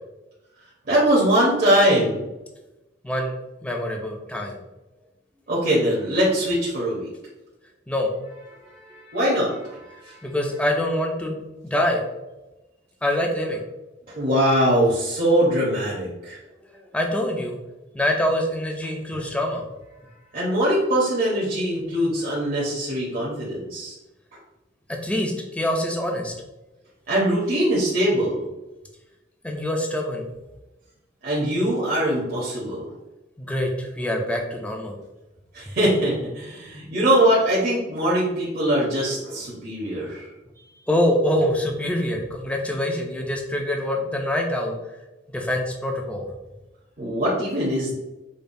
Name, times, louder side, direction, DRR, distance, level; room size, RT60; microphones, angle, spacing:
voice 1, 0.9-2.2 5.5-7.1 8.7-10.3 14.1-16.4 20.3-23.9 27.1-28.5 31.2-32.8 35.5-40.2 47.0-47.9, right 1 dB, 50° right, -6 dB, 0.8 m, -22 dB
voice 2, 3.6-4.6 7.9-8.1 10.2-12.0 13.0-13.6 16.7-17.6 17.9-19.6 25.0-26.3 29.4-30.2 33.4-34.9 40.9-44.8 45.3-46.2, left 1 dB, 5° left, 1 dB, 0.4 m, -25 dB
5.2 x 2.2 x 2.6 m, 1.0 s
head